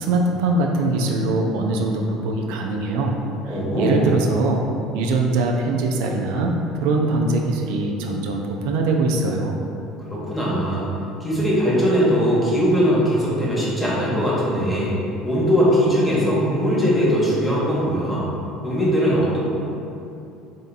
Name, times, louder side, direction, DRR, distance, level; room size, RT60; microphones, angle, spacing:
voice 1, 0.0-3.2 3.5-4.6 4.9-9.6, right 2 dB, 80° right, 1 dB, 0.4 m, -22 dB
voice 2, 3.5-4.1 10.0-10.9 11.2-14.9 15.2-18.2 18.6-19.4, equal, 10° left, -7 dB, 1.1 m, -20 dB
3.3 x 2.7 x 3.9 m, 2.8 s
cardioid pair, 120°, 0 cm